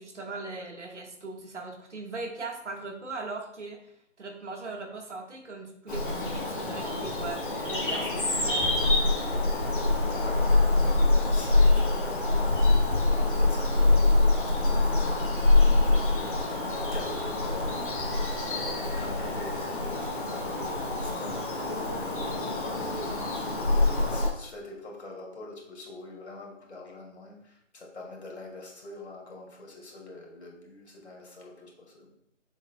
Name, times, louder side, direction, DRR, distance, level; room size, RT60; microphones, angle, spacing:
voice 1, 0.0-3.8 4.2-8.6, right 3 dB, 65° right, 2 dB, 1.7 m, -39 dB
Bird vocalization bird call bird song, 5.9-24.3, left 2 dB, 45° left, 1.8 m, -25 dB
voice 2, 10.1-18.2 18.5-32.1, left 2 dB, 60° left, -1 dB, 2.3 m, -44 dB
7.0 x 6.6 x 2.3 m, 0.73 s
hypercardioid pair, 180°, 37 cm